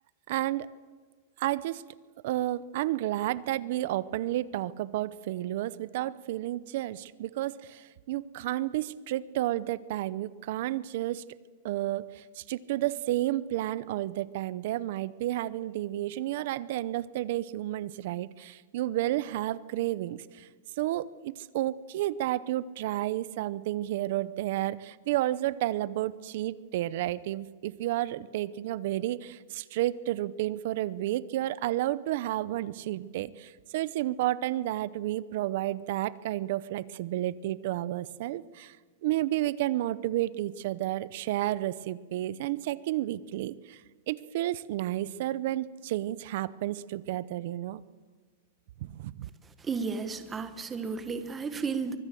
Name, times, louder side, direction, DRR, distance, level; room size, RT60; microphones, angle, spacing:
voice 1, 0.3-0.7 1.4-1.8 2.2-11.2 11.6-20.5 20.8-38.8 39.0-43.8 44.1-47.8 48.8-49.3, right 14 dB, 55° right, 19 dB, 0.7 m, -31 dB
voice 2, 49.6-52.0, right 5 dB, 15° right, 10 dB, 1.3 m, -33 dB
24.0 x 22.0 x 7.7 m, 1.5 s
supercardioid pair, 165°, 0 cm